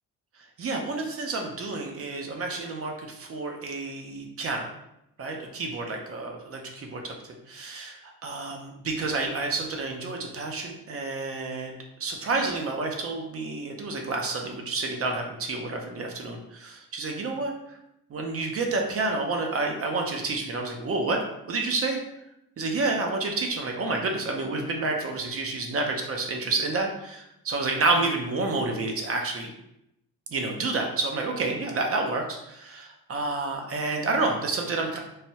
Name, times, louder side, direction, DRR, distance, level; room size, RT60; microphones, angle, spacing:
voice 1, 0.6-4.7 5.2-7.9 8.2-11.7 12.0-17.5 18.1-22.0 22.6-29.5 30.3-35.0, right 3 dB, 40° right, 2 dB, 0.6 m, -29 dB
3.2 x 2.2 x 2.8 m, 0.84 s
cardioid pair, 85°, 34 cm